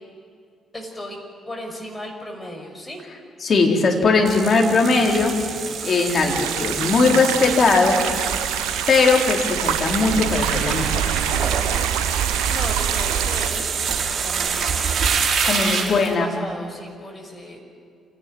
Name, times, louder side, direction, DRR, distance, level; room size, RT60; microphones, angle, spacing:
voice 1, 0.7-1.2 1.5-3.0 12.5-13.8 14.2-14.7 15.5-17.6, left 1 dB, 15° left, 1 dB, 6.0 m, -35 dB
voice 2, 3.4-5.3 5.8-8.0 8.9-11.0 15.4-16.3, left 4 dB, 45° left, 0 dB, 4.1 m, -19 dB
sound 1, 4.2-16.1, right 6 dB, 45° right, 4.6 m, -26 dB
sound 2, 6.3-13.5, right 10 dB, 70° right, 0.8 m, -26 dB
27.0 x 17.5 x 9.3 m, 2.3 s
figure-of-eight pair, 40°, 0 cm